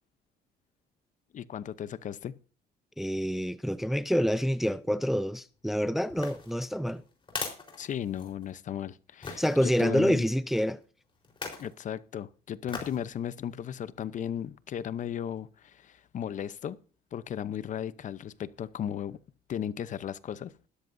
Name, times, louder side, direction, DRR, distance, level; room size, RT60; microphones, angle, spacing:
voice 1, 1.3-2.3 7.8-10.3 11.6-16.8 17.1-19.2 19.5-20.5, left 9 dB, 50° left, 0.8 m, -35 dB
voice 2, 3.0-7.0 9.4-10.8, equal, ahead, 0.5 m, -27 dB
sound 1, 6.1-8.5 9.2-9.6 11.2-11.7 12.7-13.0 13.5-13.6, left 4 dB, 30° left, 4.1 m, -40 dB
16.5 x 13.0 x 2.7 m
cardioid pair, 110°, 17 cm